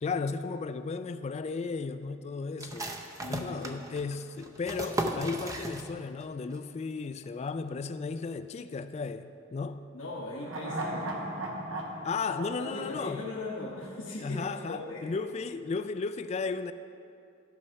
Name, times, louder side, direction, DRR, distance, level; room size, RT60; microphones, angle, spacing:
voice 1, 0.0-3.0 3.3-9.9 12.0-13.3 14.2-16.7, left 4 dB, 35° left, 11 dB, 0.3 m, -34 dB
sound 1, 2.6-6.2 6.5-6.6 7.0-7.5, right 1 dB, 15° right, 0.6 m, -36 dB
voice 2, 3.1-3.8 9.9-11.3 12.3-15.1, left 2 dB, 70° left, -6 dB, 1.2 m, -39 dB
sound 2, 10.4-13.8 14.1-14.2, right 1 dB, 75° right, 1.1 m, -37 dB
13.0 x 5.5 x 5.6 m, 2.5 s
head